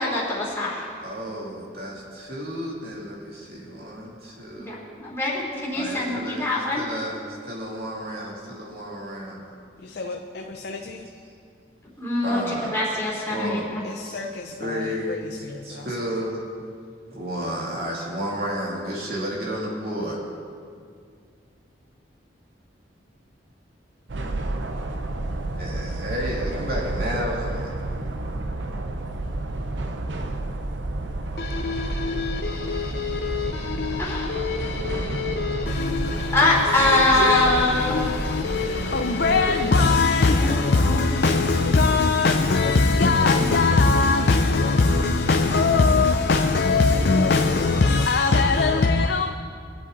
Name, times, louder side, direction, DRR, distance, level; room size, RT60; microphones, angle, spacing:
voice 1, 0.0-0.9 4.6-6.8 12.0-13.6 34.0-34.3 36.3-38.0 39.6-39.7 40.4-41.2 43.4-43.6 47.0-47.2, left 2 dB, 15° left, 3.0 m, -23 dB
voice 2, 1.0-4.8 5.7-9.4 9.9-11.1 12.2-12.8 13.3-16.4 17.1-20.2 25.6-27.8, equal, 55° right, 2.7 m, -32 dB
voice 3, 9.8-11.1 13.8-15.2 15.4-15.9 31.4-49.3, left 3 dB, 60° left, 0.5 m, -22 dB
sound 1, 24.1-39.7, right 2 dB, 85° right, 0.8 m, -30 dB
22.5 x 7.9 x 4.0 m
head